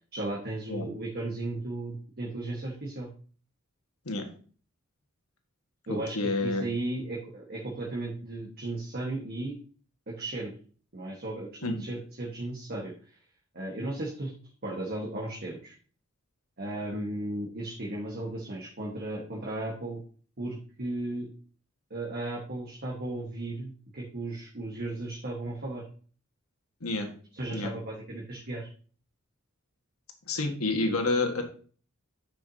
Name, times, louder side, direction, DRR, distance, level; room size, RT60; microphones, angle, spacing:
voice 1, 0.1-3.1 5.9-9.6 10.1-10.5 10.9-13.2 13.5-14.3 14.6-15.7 16.6-20.0 20.4-21.3 21.9-25.8 27.3-28.7, right 2 dB, 50° right, -3 dB, 1.5 m, -35 dB
voice 2, 5.9-6.6 11.6-11.7 26.8-27.1 27.5-27.7 30.3-31.4, left 2 dB, 85° left, 4 dB, 1.6 m, -29 dB
9.8 x 6.0 x 2.8 m, 0.42 s
head